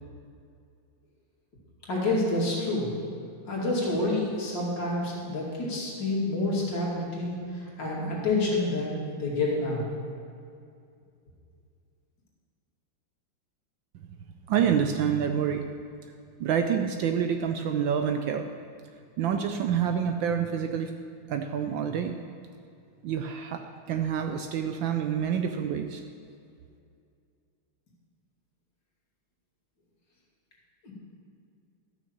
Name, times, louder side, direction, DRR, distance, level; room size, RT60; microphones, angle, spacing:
voice 1, 1.9-2.9 3.5-9.9 30.8-30.9, left 2 dB, 55° left, -4 dB, 3.0 m, -28 dB
voice 2, 14.5-15.7 16.4-18.5 19.2-20.9 21.3-22.1 23.0-26.0, right 8 dB, 75° right, 6 dB, 1.2 m, -27 dB
13.0 x 6.2 x 7.2 m, 2.4 s
omnidirectional pair, 2.4 m